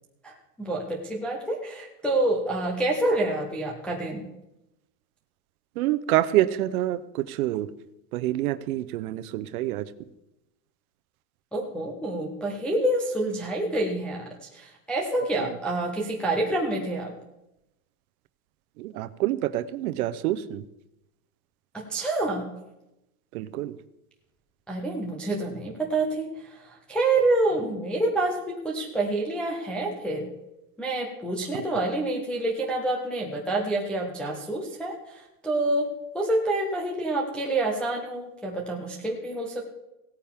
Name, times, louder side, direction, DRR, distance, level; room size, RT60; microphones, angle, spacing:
voice 1, 0.6-4.3 11.5-14.2 14.5-17.1 21.7-22.5 24.7-30.3 30.8-39.6, right 2 dB, 5° left, -3 dB, 0.3 m, -27 dB
voice 2, 5.8-7.7 8.1-9.9 15.4-15.5 18.8-20.7 23.3-23.8 31.5-31.6, right 14 dB, 65° right, 14 dB, 0.8 m, -27 dB
17.0 x 8.9 x 3.6 m, 0.90 s
supercardioid pair, 145°, 47 cm